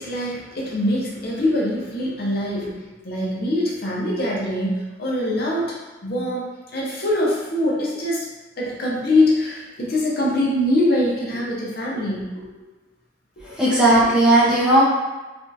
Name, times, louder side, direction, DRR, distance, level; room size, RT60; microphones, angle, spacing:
voice 1, 0.0-5.8 6.0-6.5 6.7-8.3 8.6-12.5 13.4-13.5, left 1 dB, 55° left, -4 dB, 0.7 m, -23 dB
voice 2, 13.4-14.8, right 1 dB, 5° right, -9 dB, 0.6 m, -16 dB
3.4 x 2.3 x 2.6 m, 1.2 s
head